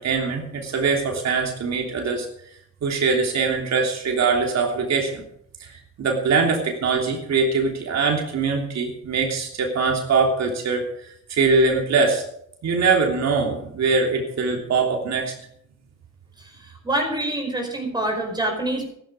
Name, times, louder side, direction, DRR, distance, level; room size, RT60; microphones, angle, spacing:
voice 1, 0.0-2.3 2.8-5.2 5.6-10.8 11.3-12.2 12.6-15.3, right 4 dB, 60° right, 1 dB, 3.2 m, -22 dB
voice 2, 16.4-18.9, right 1 dB, 15° right, 2 dB, 4.9 m, -26 dB
14.0 x 12.5 x 5.0 m, 0.70 s
cardioid pair, 90°, 30 cm